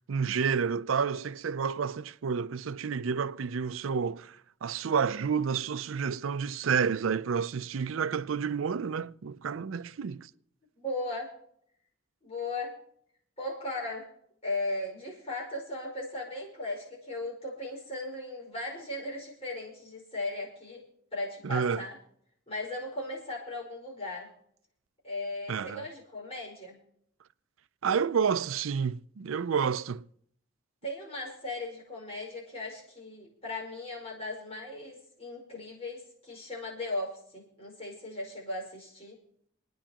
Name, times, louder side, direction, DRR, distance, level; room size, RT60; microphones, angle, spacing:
voice 1, 0.1-10.3 21.4-21.8 25.5-25.9 27.8-30.0, right 6 dB, 85° right, 0.5 m, -30 dB
voice 2, 10.8-11.3 12.2-12.8 13.4-14.1 14.4-20.8 21.1-22.0 22.5-24.3 25.0-26.8 30.8-39.2, left 2 dB, 30° left, 5.2 m, -37 dB
27.5 x 10.0 x 3.0 m
head